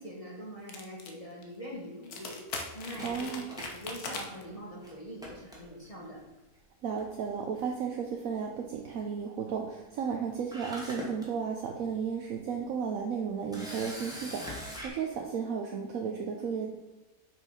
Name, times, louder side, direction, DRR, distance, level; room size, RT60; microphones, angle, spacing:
voice 1, 0.0-6.3, equal, 25° left, -4 dB, 1.6 m, -43 dB
sound 1, 0.7-1.1 1.4-1.5 2.0-4.4, left 4 dB, 75° left, 1.5 m, -40 dB
Camera, 2.9-4.5 4.8-4.9 5.2-6.1 7.0-7.3 7.5-7.6 10.1-10.2 10.5-11.3 11.8-12.0 13.5-14.9, equal, ahead, 1.8 m, -42 dB
voice 2, 3.0-3.5 6.8-16.8, right 6 dB, 70° right, 1 dB, 1.1 m, -34 dB
6.3 x 5.1 x 5.7 m, 1.1 s
omnidirectional pair, 1.6 m